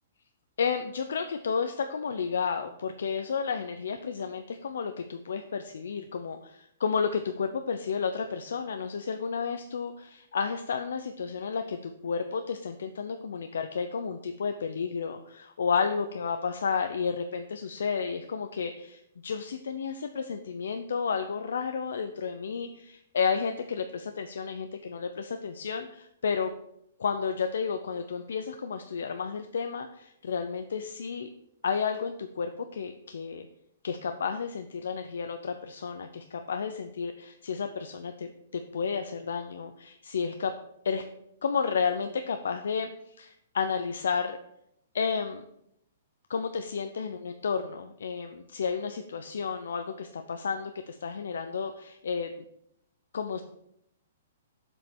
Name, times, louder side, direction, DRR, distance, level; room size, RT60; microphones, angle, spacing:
voice 1, 0.6-26.5 27.0-31.3 31.6-33.5 33.8-40.5 40.8-41.0 41.4-42.9 43.2-44.4 44.9-45.4 46.3-52.3 53.1-53.4, left 6 dB, 85° left, 7 dB, 0.7 m, -32 dB
7.5 x 5.3 x 6.1 m, 0.76 s
hypercardioid pair, 180°, 0 cm